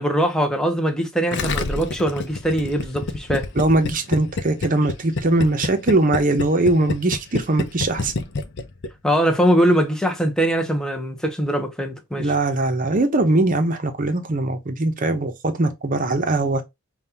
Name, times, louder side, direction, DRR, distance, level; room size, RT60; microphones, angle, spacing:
voice 1, 0.0-3.5 9.0-12.3, equal, 5° left, 0.8 m, -21 dB
Gurgling, 1.3-8.9 9.1-9.2, left 3 dB, 55° left, 0.6 m, -27 dB
voice 2, 3.6-8.1 12.2-16.6, right 2 dB, 40° right, 0.8 m, -21 dB
5.2 x 2.4 x 2.8 m
head